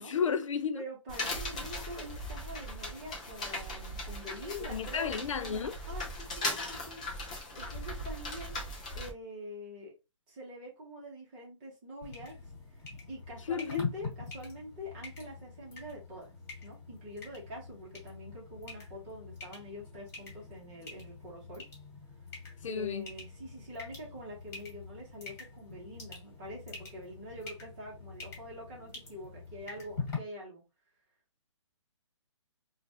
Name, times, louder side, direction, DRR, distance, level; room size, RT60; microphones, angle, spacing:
voice 1, 0.0-0.8 4.7-5.8 13.5-13.9 22.6-23.1, left 6 dB, 80° left, 0.4 m, -32 dB
voice 2, 0.7-7.0 7.3-8.5 8.9-9.9 10.3-12.4 13.1-16.3 16.6-21.6 22.7-30.6, equal, 15° right, 1.1 m, -45 dB
sound 1, 1.1-9.1, left 1 dB, 10° left, 0.3 m, -38 dB
sound 2, 12.0-30.2, left 4 dB, 30° left, 1.8 m, -45 dB
3.9 x 2.4 x 2.8 m
hypercardioid pair, 175°, 16 cm